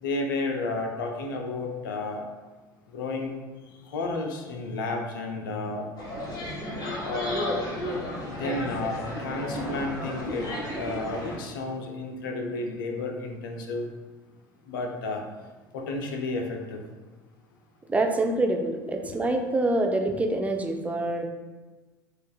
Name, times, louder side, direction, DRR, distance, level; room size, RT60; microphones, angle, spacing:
voice 1, 0.0-2.3 2.9-3.3 3.9-5.9 7.0-7.7 8.3-10.5 10.8-13.9 14.7-15.2 15.7-16.8 19.0-19.1, left 2 dB, 70° left, 2 dB, 0.6 m, -32 dB
sound 1, 6.0-11.4, left 1 dB, 35° left, 1.4 m, -33 dB
voice 2, 17.9-21.3, right 2 dB, 10° right, 3 dB, 0.4 m, -26 dB
6.3 x 2.4 x 2.3 m, 1.2 s
figure-of-eight pair, 70°, 11 cm